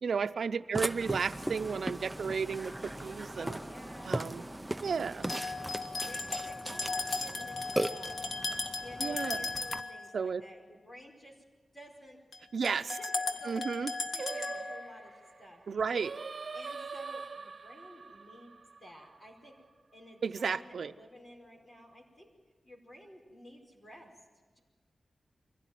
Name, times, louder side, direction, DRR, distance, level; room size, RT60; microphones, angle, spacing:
voice 1, 0.0-2.7 3.0-3.6 4.0-4.4 4.8-5.3 9.0-9.5 10.1-10.4 12.5-13.0 13.4-13.9 15.7-16.1 20.2-20.9, right 5 dB, 85° right, 12 dB, 0.7 m, -33 dB
Burping eructation, 0.7-9.8, right 1 dB, 10° right, 0.7 m, -38 dB
voice 2, 2.8-8.4 8.8-11.4 11.7-12.2 12.9-13.7 14.1-16.1 16.5-19.5 19.9-22.3 22.6-24.1, equal, 35° left, 0 dB, 5.0 m, -53 dB
sound 1, 5.2-10.0 12.3-12.4 12.6-14.9, left 3 dB, 75° left, 1.6 m, -36 dB
Singing, 14.2-19.5, right 4 dB, 50° right, 0.7 m, -43 dB
23.5 x 16.5 x 9.2 m, 1.3 s
wide cardioid pair, 120°, 0 cm